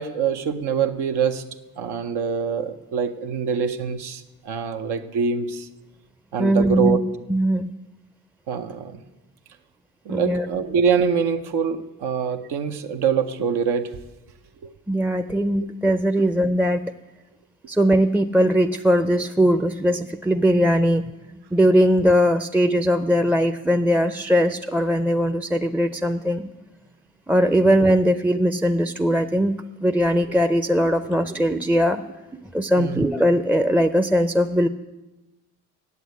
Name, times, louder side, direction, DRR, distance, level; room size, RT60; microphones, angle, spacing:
voice 1, 0.0-1.4 1.8-5.7 6.3-7.0 8.5-9.0 10.1-13.9 14.6-14.7 15.6-15.7 32.8-33.0, right 6 dB, 85° right, 6 dB, 0.8 m, -24 dB
voice 2, 6.4-7.0 7.3-7.7 10.1-10.5 14.9-16.8 17.7-21.0 21.3-26.5 27.3-29.6 29.8-32.0 32.5-34.7, equal, 5° right, 8 dB, 0.4 m, -20 dB
8.3 x 8.1 x 8.2 m, 1.1 s
cardioid pair, 60°, 38 cm